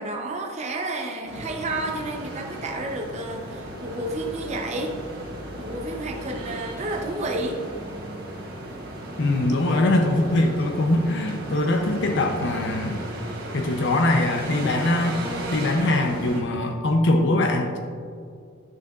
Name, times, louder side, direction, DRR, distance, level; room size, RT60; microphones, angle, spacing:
voice 1, 0.0-5.0 5.6-7.6, right 2 dB, 30° right, 1 dB, 0.6 m, -31 dB
sound 1, 1.2-16.4, right 1 dB, 50° right, 1.3 m, -35 dB
voice 2, 9.2-13.0 13.5-15.2 15.5-17.8, left 2 dB, 55° left, 3 dB, 0.6 m, -22 dB
10.5 x 6.6 x 2.4 m, 2.3 s
head